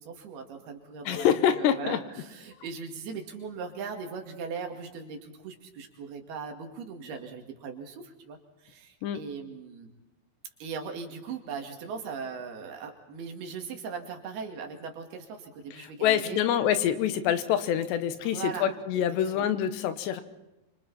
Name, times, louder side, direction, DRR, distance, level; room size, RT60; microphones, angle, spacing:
voice 1, 0.0-8.4 8.6-9.9 10.6-16.4 18.2-18.7 19.3-19.5, right 5 dB, 70° right, 4 dB, 4.1 m, -39 dB
voice 2, 1.1-2.0 9.0-9.2 15.8-20.2, left 9 dB, 90° left, 10 dB, 3.4 m, -26 dB
27.0 x 25.5 x 4.3 m, 0.99 s
omnidirectional pair, 4.8 m